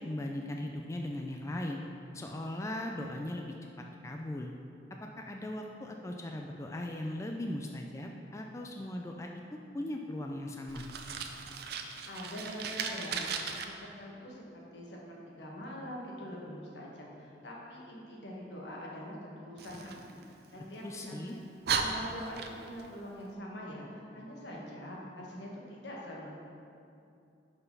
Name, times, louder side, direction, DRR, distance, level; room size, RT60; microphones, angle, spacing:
voice 1, 0.0-1.8 2.1-3.5 4.0-4.5 5.2-10.9 20.8-21.4, left 1 dB, 15° left, 2 dB, 0.3 m, -38 dB
Fire, 10.7-13.6 19.6-20.8 21.3-21.4 21.6-22.9, right 5 dB, 60° right, 0.5 m, -36 dB
voice 2, 12.1-13.2 13.5-15.0 15.3-21.2 21.8-26.3, equal, 75° left, -3 dB, 1.5 m, -44 dB
5.8 x 5.7 x 5.4 m, 2.6 s
head